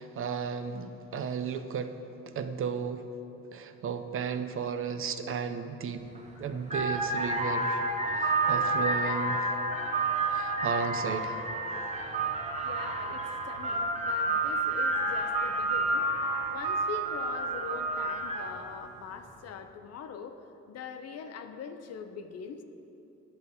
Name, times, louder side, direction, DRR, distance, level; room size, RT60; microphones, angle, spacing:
voice 1, 0.0-1.9 2.3-3.0 3.5-6.1 6.4-7.8 8.1-9.5 10.3-11.4, right 6 dB, 45° right, 8 dB, 0.4 m, -34 dB
sound 1, 6.0-6.2 6.6-18.7, right 2 dB, 25° right, 0.8 m, -30 dB
voice 2, 12.5-16.1 16.5-20.4 20.7-22.6, left 6 dB, 55° left, 8 dB, 0.5 m, -42 dB
10.5 x 6.4 x 2.7 m, 2.8 s
cardioid pair, 90°, 30 cm